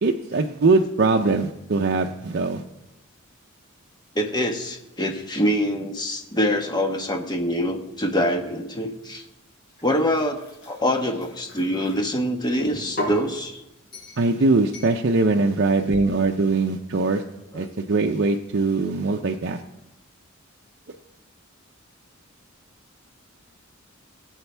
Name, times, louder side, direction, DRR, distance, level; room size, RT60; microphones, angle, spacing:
voice 1, 0.0-2.6 14.2-17.2 17.5-19.6, right 3 dB, 55° right, 2 dB, 0.6 m, -21 dB
voice 2, 4.1-9.2 9.8-13.6 17.5-17.7, equal, 20° left, 3 dB, 1.3 m, -25 dB
sound 1, 9.7-12.0 12.6-13.3 13.9-14.3 14.7-15.0, left 1 dB, 50° left, 5.0 m, -35 dB
18.5 x 8.0 x 3.4 m, 0.90 s
head